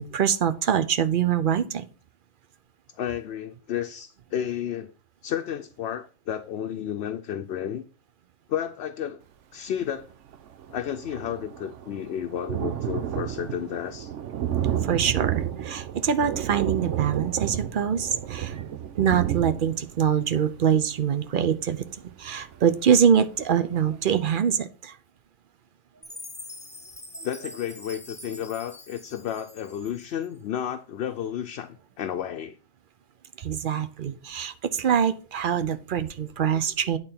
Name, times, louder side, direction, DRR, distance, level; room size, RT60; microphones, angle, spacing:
voice 1, 0.0-1.8 14.8-18.6 19.0-21.8 22.2-24.9 33.4-37.0, right 8 dB, 55° right, 0.7 m, -24 dB
voice 2, 2.9-4.9 5.2-7.8 8.5-9.2 9.5-10.1 10.7-14.1 27.2-32.6, left 9 dB, 65° left, 0.8 m, -32 dB
Thunder, 10.0-10.1 10.3-22.9 23.4-23.5 23.8-23.9, right 10 dB, 90° right, 1.0 m, -31 dB
Chime, 26.0-30.3, left 1 dB, 5° left, 0.8 m, -44 dB
9.0 x 4.0 x 5.7 m
omnidirectional pair, 1.2 m